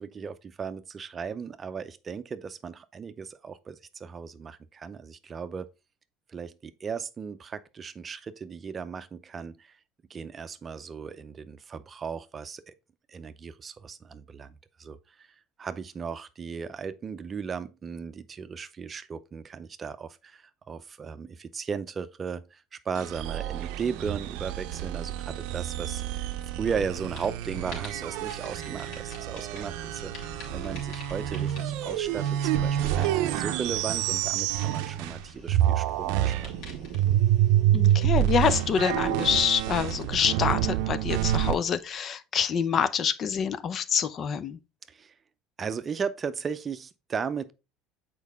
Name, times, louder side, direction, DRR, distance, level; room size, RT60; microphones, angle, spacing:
voice 1, 0.0-5.7 6.3-9.8 10.1-12.7 13.1-15.3 15.6-26.3 26.6-36.7 44.9-45.1 45.6-47.5, right 6 dB, 30° right, 0.6 m, -36 dB
sound 1, 22.9-35.2 35.5-41.5, right 12 dB, 75° right, 0.5 m, -28 dB
sound 2, 26.3-26.7 27.0-42.0, left 2 dB, 65° left, 2.8 m, -48 dB
voice 2, 37.7-44.6, left 7 dB, 45° left, 0.6 m, -26 dB
6.5 x 4.6 x 3.5 m
supercardioid pair, 100°, 0 cm